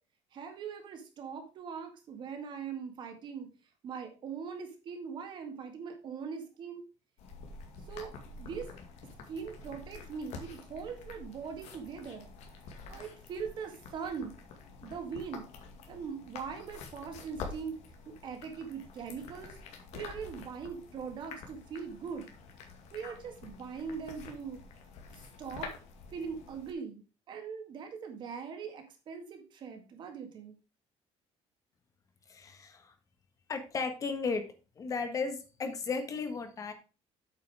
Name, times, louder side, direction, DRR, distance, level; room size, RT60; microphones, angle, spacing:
voice 1, 0.3-3.5 3.8-6.8 7.9-8.7 9.3-12.3 12.9-14.3 14.8-15.5 15.9-17.8 18.1-19.5 19.9-22.3 22.9-24.6 25.1-25.7 26.1-30.6, right 6 dB, 40° right, 5 dB, 2.0 m, -41 dB
sound 1, 7.2-26.7, left 4 dB, 70° left, 2.2 m, -48 dB
voice 2, 32.3-32.9 33.5-34.5 34.8-36.7, left 4 dB, 30° left, 8 dB, 1.5 m, -35 dB
8.5 x 5.7 x 4.8 m, 0.33 s
cardioid pair, 175°, 12 cm